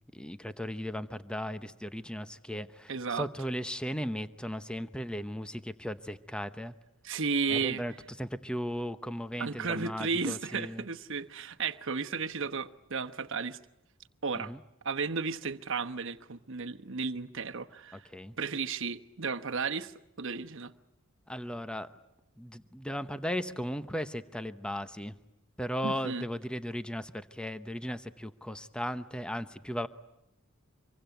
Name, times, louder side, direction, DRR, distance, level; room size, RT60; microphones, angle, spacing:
voice 1, 0.1-6.7 7.5-7.9 8.2-10.8 14.3-14.6 17.9-18.4 21.3-21.9 22.4-25.1 25.6-29.9, equal, 5° left, 0.9 m, -36 dB
voice 2, 2.9-3.3 7.0-7.8 9.4-13.6 14.2-14.5 14.8-18.0 18.4-19.9 20.2-20.7 25.8-26.2, right 5 dB, 65° right, 1.2 m, -33 dB
26.0 x 23.5 x 9.3 m
head